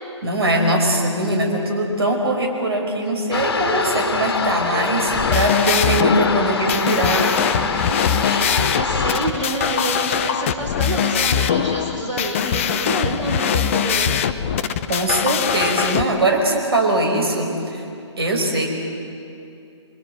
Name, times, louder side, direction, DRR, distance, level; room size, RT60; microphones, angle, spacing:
voice 1, 0.2-7.4 7.9-8.2 14.9-17.8 18.2-18.7, right 1 dB, 55° right, 2 dB, 5.1 m, -21 dB
sound 1, 3.3-9.3, left 4 dB, 50° left, 1.8 m, -24 dB
sound 2, 5.1-16.0, left 8 dB, 25° left, 0.7 m, -22 dB
voice 2, 8.5-14.2, right 1 dB, 70° right, -1 dB, 3.9 m, -27 dB
26.0 x 22.5 x 7.8 m, 2.6 s
figure-of-eight pair, 140°, 16 cm